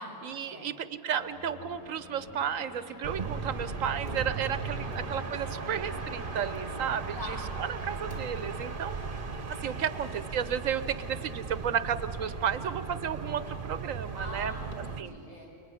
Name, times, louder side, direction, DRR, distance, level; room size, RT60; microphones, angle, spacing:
voice 1, 0.2-9.1 9.6-14.5 15.0-15.1, right 8 dB, 85° right, 13 dB, 1.2 m, -33 dB
sound 1, 1.1-7.1, left 3 dB, 80° left, 2.2 m, -48 dB
sound 2, 3.0-15.0, right 4 dB, 45° right, 1.3 m, -37 dB
sound 3, 4.1-5.6 8.1-8.7, right 4 dB, 15° left, 3.0 m, -43 dB
voice 2, 4.8-5.2 7.1-7.4 7.8-8.0 9.9-10.0 14.1-15.7, left 1 dB, 45° left, -3 dB, 6.4 m, -44 dB
29.5 x 20.5 x 9.9 m, 2.7 s
omnidirectional pair, 1.3 m